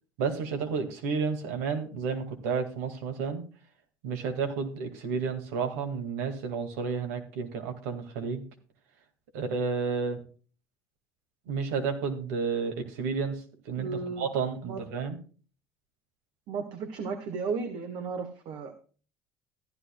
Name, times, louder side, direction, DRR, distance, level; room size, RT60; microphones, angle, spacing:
voice 1, 0.2-3.4 4.0-8.4 9.3-10.2 11.5-13.4 13.7-13.9 14.2-15.2, right 5 dB, 80° right, 6 dB, 2.1 m, -31 dB
voice 2, 13.8-14.3 14.6-14.8 16.5-18.7, right 5 dB, 65° right, 5 dB, 1.5 m, -34 dB
14.5 x 11.0 x 2.3 m, 0.39 s
hypercardioid pair, 80°, 8 cm